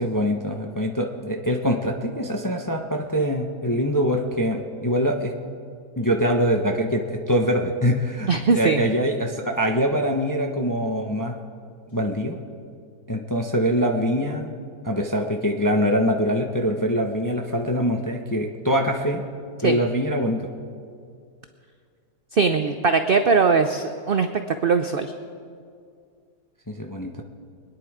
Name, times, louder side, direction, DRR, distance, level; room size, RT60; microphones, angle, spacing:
voice 1, 0.0-5.3 6.0-11.3 11.9-12.4 13.1-14.5 14.8-19.2 19.6-20.5 26.7-27.2, equal, 20° left, 2 dB, 0.5 m, -24 dB
voice 2, 8.3-8.8 19.6-19.8 22.3-24.3 24.6-25.1, right 5 dB, 65° right, 8 dB, 0.5 m, -20 dB
24.5 x 10.0 x 4.9 m, 2.3 s
omnidirectional pair, 1.7 m